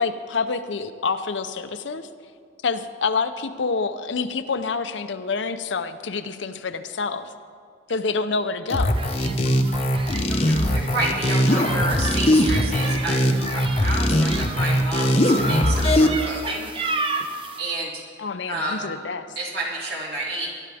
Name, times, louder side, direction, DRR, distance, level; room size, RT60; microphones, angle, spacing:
voice 1, 0.0-2.1 2.6-7.3 7.9-9.0 18.2-19.3, left 4 dB, 75° left, 10 dB, 0.7 m, -27 dB
sound 1, 8.7-16.1, left 1 dB, 30° left, 0.8 m, -20 dB
sound 2, 8.9-17.6, right 3 dB, 30° right, 0.7 m, -33 dB
voice 2, 10.3-16.7 17.6-18.0 18.5-18.9 19.3-20.5, right 1 dB, 55° right, -4 dB, 3.2 m, -30 dB
20.0 x 12.0 x 3.5 m, 2.2 s
head